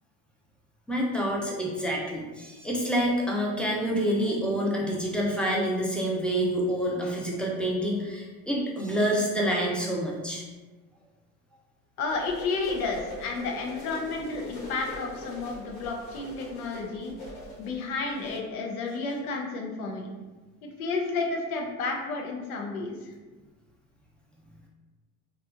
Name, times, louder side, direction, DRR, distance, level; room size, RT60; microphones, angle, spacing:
voice 1, 0.9-10.4, equal, ahead, -3 dB, 0.5 m, -27 dB
voice 2, 12.0-17.1 17.6-20.1 20.6-23.1, left 3 dB, 90° left, 0 dB, 0.6 m, -31 dB
sound 1, 12.1-18.4, left 1 dB, 70° left, 1.1 m, -42 dB
2.8 x 2.3 x 2.4 m, 1.3 s
hypercardioid pair, 80°, 42 cm